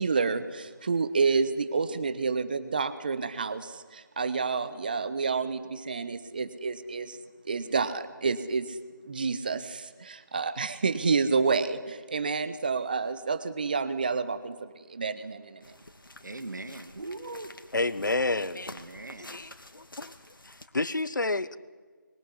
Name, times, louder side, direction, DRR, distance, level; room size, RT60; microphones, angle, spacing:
voice 1, 0.0-7.2 7.5-8.8 9.0-15.7, right 4 dB, 25° right, 1.1 m, -29 dB
sound 1, 15.6-20.7, left 1 dB, 80° left, 2.8 m, -49 dB
voice 2, 16.2-17.5 18.7-19.4, right 2 dB, 60° right, 2.1 m, -40 dB
voice 3, 17.7-18.7 19.2-20.1 20.4-21.6, left 2 dB, 65° left, 1.3 m, -30 dB
25.0 x 23.0 x 9.8 m
figure-of-eight pair, 165°, 11 cm